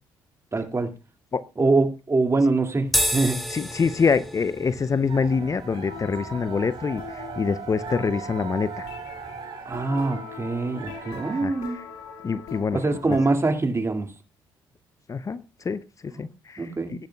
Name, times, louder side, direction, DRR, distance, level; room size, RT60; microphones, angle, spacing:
voice 1, 0.5-0.9 1.6-3.4 9.7-11.8 12.7-14.1 16.6-16.9, right 3 dB, 30° right, 5 dB, 2.4 m, -24 dB
sound 1, 2.9-9.4, equal, ahead, 2.6 m, -33 dB
voice 2, 3.5-8.9 11.3-11.8 12.2-12.8 15.1-17.1, left 5 dB, 35° left, 15 dB, 0.7 m, -26 dB
sound 2, 5.1-11.5, right 6 dB, 55° right, 2.1 m, -39 dB
sound 3, 5.9-13.3, left 6 dB, 85° left, 2.0 m, -42 dB
19.0 x 10.5 x 2.3 m, 0.29 s
hypercardioid pair, 55°, 10 cm